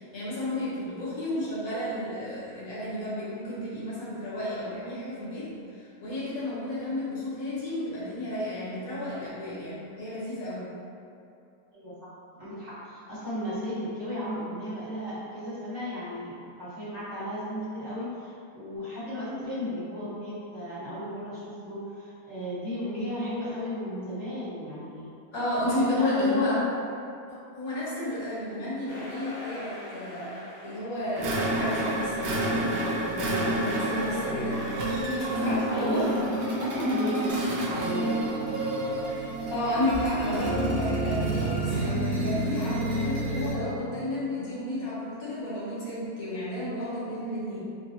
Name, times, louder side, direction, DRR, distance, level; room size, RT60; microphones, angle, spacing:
voice 1, 0.0-10.7 25.3-26.6 27.3-30.3 30.6-34.6 35.4-36.1 36.4-36.8 37.2-37.4 39.5-47.6, left 1 dB, 65° left, -9 dB, 1.3 m, -32 dB
voice 2, 11.7-12.1 12.4-25.1 25.7-26.6 28.4-28.6 34.0-34.6 35.7-38.4, left 1 dB, 50° right, -12 dB, 1.4 m, -35 dB
sound 1, 28.9-31.4, equal, 40° left, 0.7 m, -42 dB
sound 2, 31.2-43.7, right 1 dB, 75° right, 0.5 m, -29 dB
3.9 x 2.1 x 2.6 m, 2.6 s
omnidirectional pair, 1.6 m